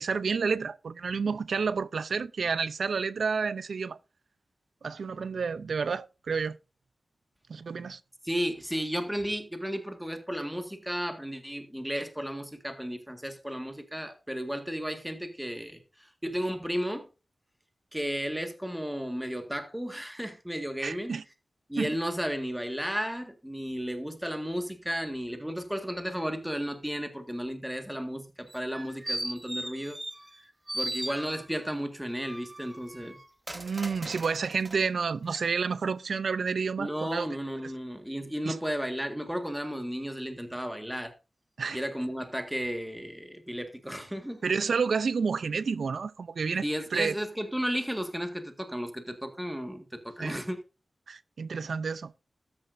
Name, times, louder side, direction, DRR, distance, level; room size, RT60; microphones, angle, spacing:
voice 1, 0.0-4.0 4.8-6.6 7.5-8.0 20.8-21.2 21.8-21.9 33.5-37.3 38.4-38.6 41.6-41.8 44.4-46.6 46.9-47.1 50.2-50.3 51.1-52.1, right 5 dB, 90° right, 0.6 m, -30 dB
voice 2, 8.2-17.1 17.9-21.1 21.7-30.0 30.7-33.2 36.8-41.1 41.7-44.4 46.6-50.6, equal, 5° right, 1.8 m, -34 dB
sound 1, 28.5-30.4 30.7-31.7 32.2-34.8 35.3-35.4, right 1 dB, 20° right, 1.3 m, -38 dB
13.5 x 9.8 x 2.6 m
wide cardioid pair, 85°, 0 cm